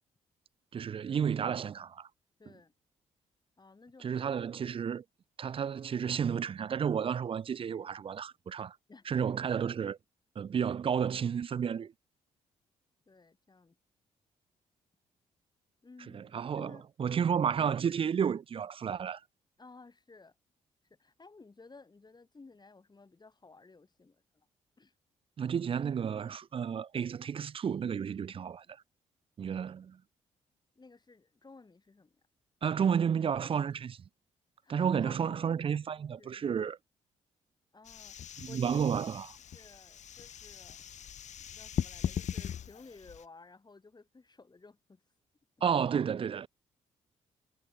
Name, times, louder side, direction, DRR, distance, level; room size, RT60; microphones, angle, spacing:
voice 1, 0.7-2.1 4.0-5.0 5.4-8.8 9.1-10.0 10.4-11.9 16.1-19.2 25.4-28.7 29.4-30.0 32.6-34.0 34.7-36.8 38.4-39.4 45.6-46.5, right 7 dB, 40° right, 0.4 m, -31 dB
voice 2, 2.4-2.7 3.6-4.2 8.9-9.4 13.1-13.7 15.8-16.9 19.6-20.3 21.0-24.5 24.8-24.9 30.7-32.2 34.6-35.6 36.0-36.6 37.7-38.8 39.5-40.8 41.4-45.0 45.6-45.7, left 3 dB, 30° left, 3.1 m, -55 dB
sound 1, 37.9-43.2, left 9 dB, 55° left, 0.9 m, -39 dB
hypercardioid pair, 50°, 14 cm